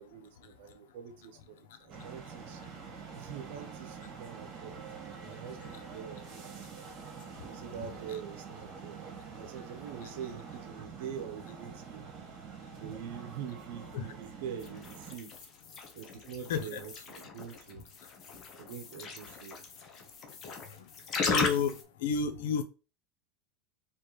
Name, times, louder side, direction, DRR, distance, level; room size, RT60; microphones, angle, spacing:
voice 1, 0.0-2.6 3.1-6.6 7.4-9.0 9.3-12.1 12.8-15.3 15.9-17.9 18.6-19.6, right 8 dB, 70° right, 0.9 m, -44 dB
sound 1, 1.9-15.2, right 6 dB, 40° right, 1.8 m, -46 dB
sound 2, 14.6-21.8, left 5 dB, 35° left, 0.9 m, -37 dB
voice 2, 21.2-21.7 22.0-22.6, left 5 dB, 80° left, 0.7 m, -29 dB
4.5 x 3.3 x 3.1 m
supercardioid pair, 135°, 0 cm